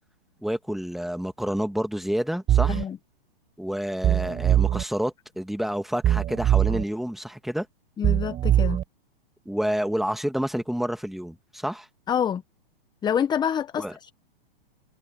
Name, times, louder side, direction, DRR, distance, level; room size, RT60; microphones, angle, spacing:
voice 1, 0.4-2.8 3.6-7.7 9.5-11.9 13.8-13.9, equal, ahead, 2.2 m, -29 dB
sound 1, 2.5-2.8 4.0-4.8 6.0-6.8 8.0-8.8, right 11 dB, 25° right, 4.2 m, -21 dB
voice 2, 8.0-8.8 12.1-12.4 13.0-14.1, left 8 dB, 15° left, 1.0 m, -27 dB
hypercardioid pair, 125°, 29 cm